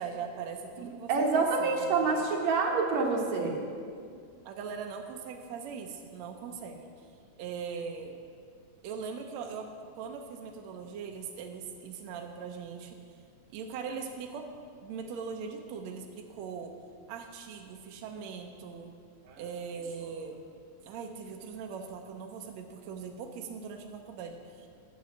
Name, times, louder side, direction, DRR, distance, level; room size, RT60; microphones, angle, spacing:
voice 1, 0.0-2.2 4.4-6.9 7.4-8.1 8.8-13.0 13.5-14.5 14.8-16.7 17.1-18.9 19.4-20.5 20.8-24.7, right 6 dB, 80° right, 3 dB, 1.6 m, -40 dB
voice 2, 0.8-3.6 19.3-19.4, right 4 dB, 60° right, 1 dB, 2.3 m, -27 dB
9.4 x 8.8 x 7.2 m, 2.3 s
omnidirectional pair, 4.0 m